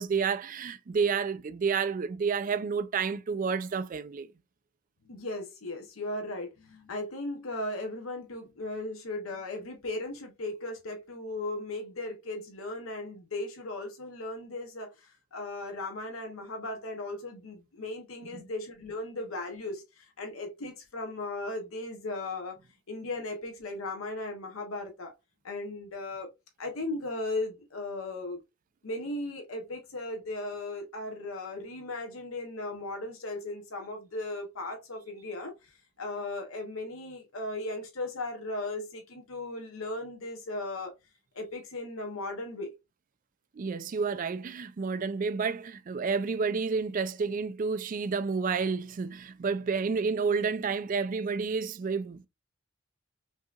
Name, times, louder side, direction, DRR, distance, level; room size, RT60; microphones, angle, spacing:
voice 1, 0.0-4.3 18.3-18.4 43.6-52.3, right 5 dB, 40° right, 0.3 m, -30 dB
voice 2, 5.1-22.6 22.9-25.1 25.4-26.3 26.6-28.4 28.8-40.9 41.3-42.7, left 2 dB, 90° left, 0.9 m, -37 dB
5.3 x 2.8 x 2.4 m
head